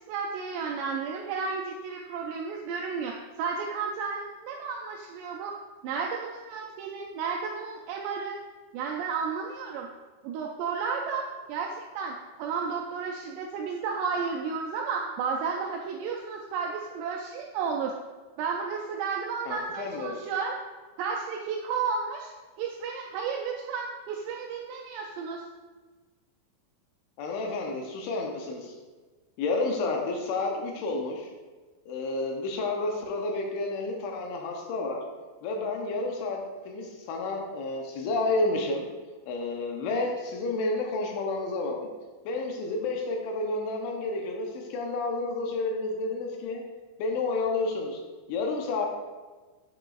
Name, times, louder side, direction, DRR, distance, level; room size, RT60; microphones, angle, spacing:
voice 1, 0.1-5.6 5.8-8.4 8.7-9.9 10.2-17.9 18.4-20.5 21.0-22.3 22.6-25.4, right 5 dB, 85° right, 0 dB, 2.5 m, -32 dB
voice 2, 19.5-20.2 27.2-28.8 29.4-31.3 31.9-35.0 35.4-38.9 39.3-41.9 42.3-46.6 47.0-48.0 48.3-48.9, left 3 dB, 90° left, 1 dB, 3.2 m, -30 dB
9.3 x 5.1 x 2.4 m, 1.3 s
omnidirectional pair, 5.2 m